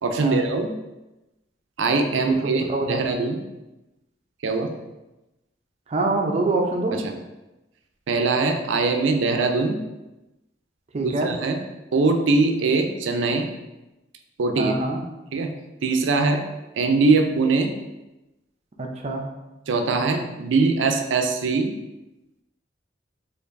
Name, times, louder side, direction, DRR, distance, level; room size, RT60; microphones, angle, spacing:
voice 1, 0.0-0.7 1.8-3.4 4.4-4.7 6.9-7.2 8.1-9.8 11.0-11.6 11.9-13.5 14.4-14.7 15.3-15.5 15.8-16.4 16.7-17.7 19.7-21.7, right 3 dB, 90° right, 5 dB, 0.4 m, -22 dB
voice 2, 2.1-3.0 5.9-6.9 10.9-11.3 14.6-15.0 18.8-19.2, right 2 dB, 35° right, 2 dB, 0.5 m, -25 dB
4.5 x 2.5 x 2.6 m, 1.0 s
head